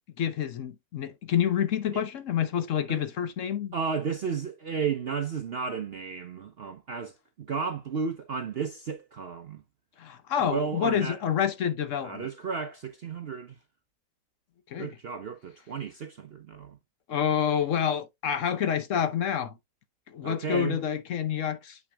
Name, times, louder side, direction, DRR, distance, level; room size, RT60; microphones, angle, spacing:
voice 1, 0.2-3.7 10.0-12.3 14.7-14.9 17.1-19.5 20.1-21.8, left 8 dB, 55° left, 0.9 m, -28 dB
voice 2, 3.7-9.6 10.4-11.2 12.0-13.6 14.8-16.8 20.2-20.8, right 5 dB, 70° right, 0.5 m, -33 dB
7.9 x 5.9 x 2.2 m
omnidirectional pair, 1.9 m